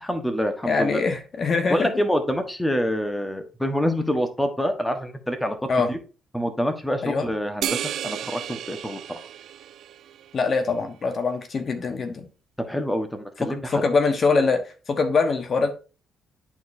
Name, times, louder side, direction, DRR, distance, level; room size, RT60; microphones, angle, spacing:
voice 1, 0.0-1.0 1.7-6.0 6.3-9.2 12.7-13.8, equal, 5° left, 6 dB, 1.2 m, -26 dB
voice 2, 0.6-1.9 5.7-5.9 7.0-7.3 10.3-12.2 13.4-14.6 14.9-15.7, left 4 dB, 45° left, 7 dB, 1.2 m, -23 dB
sound 1, 7.6-10.3, right 10 dB, 70° right, 0.3 m, -32 dB
10.5 x 4.4 x 2.7 m, 0.34 s
cardioid pair, 90°, 0 cm